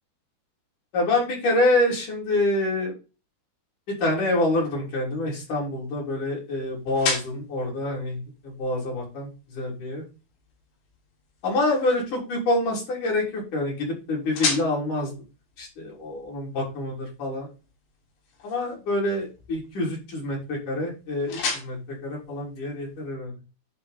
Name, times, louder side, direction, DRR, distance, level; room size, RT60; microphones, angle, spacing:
voice 1, 0.9-2.9 3.9-10.0 11.4-15.1 15.6-17.5 18.4-23.3, left 2 dB, 45° left, -3 dB, 4.6 m, -26 dB
sound 1, 4.3-23.1, left 4 dB, 75° left, 5.3 m, -38 dB
11.5 x 4.5 x 4.1 m, 0.32 s
omnidirectional pair, 5.0 m